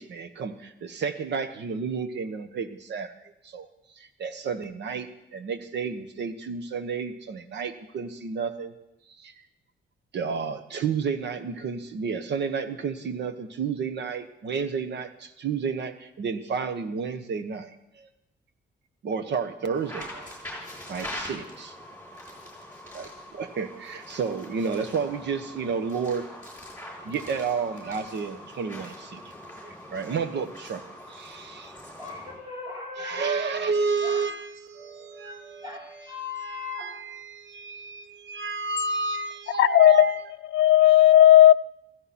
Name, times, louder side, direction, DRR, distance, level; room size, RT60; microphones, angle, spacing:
voice 1, 0.0-3.1 3.4-3.7 3.9-8.7 9.2-9.4 10.1-18.1 19.0-20.3 20.9-21.7 22.9-26.3 27.0-29.2 29.6-31.7 33.0-35.6 36.4-40.2, right 5 dB, 65° right, 1.2 m, -31 dB
sound 1, 19.7-32.4, left 1 dB, 10° left, 6.4 m, -42 dB
voice 2, 32.0-34.3 34.7-36.9, left 3 dB, 25° right, 7.9 m, -39 dB
voice 3, 39.6-40.2 40.5-41.5, left 12 dB, 85° left, 0.4 m, -15 dB
16.0 x 16.0 x 4.3 m
cardioid pair, 130°, 19 cm